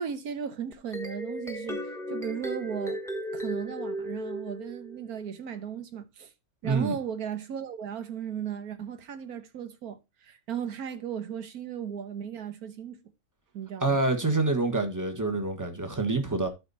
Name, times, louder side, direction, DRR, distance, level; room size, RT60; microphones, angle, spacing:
voice 1, 0.0-3.0 3.3-6.3 6.6-13.0 13.5-14.0, right 8 dB, 90° right, 1.6 m, -36 dB
sound 1, 0.7-5.1, equal, ahead, 1.1 m, -35 dB
voice 2, 6.6-6.9 13.8-16.5, right 3 dB, 15° right, 1.4 m, -26 dB
12.0 x 4.3 x 4.2 m
omnidirectional pair, 1.5 m